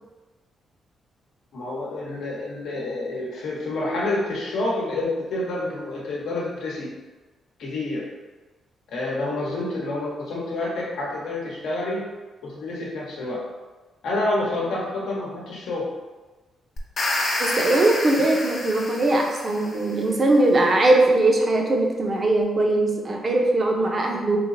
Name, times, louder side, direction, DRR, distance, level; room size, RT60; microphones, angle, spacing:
voice 1, 1.5-6.9 7.6-8.0 8.9-12.0 12.4-13.4 14.0-15.9, left 2 dB, 85° left, -4 dB, 0.9 m, -28 dB
sound 1, 16.8-19.9, left 2 dB, 55° left, 0.6 m, -28 dB
voice 2, 17.4-24.4, right 2 dB, 40° right, 1 dB, 0.6 m, -20 dB
3.2 x 3.1 x 2.5 m, 1.2 s
cardioid pair, 95°, 0 cm